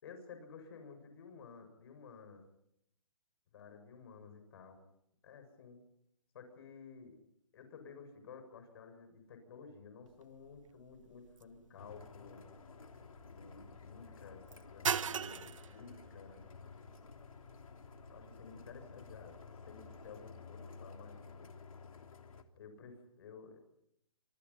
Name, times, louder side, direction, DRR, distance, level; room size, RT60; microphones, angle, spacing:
voice 1, 0.0-2.5 3.5-4.8 5.2-5.8 6.3-7.2 7.5-12.5 13.3-14.4 14.7-16.4 18.1-19.4 19.7-21.5 22.6-23.6, left 5 dB, 45° left, 8 dB, 7.2 m, -53 dB
sound 1, 10.1-20.1, right 7 dB, 65° right, 1.4 m, -44 dB
sound 2, 11.8-22.4, left 4 dB, 80° left, 3.2 m, -53 dB
27.5 x 27.0 x 5.8 m, 0.79 s
hypercardioid pair, 160°, 17 cm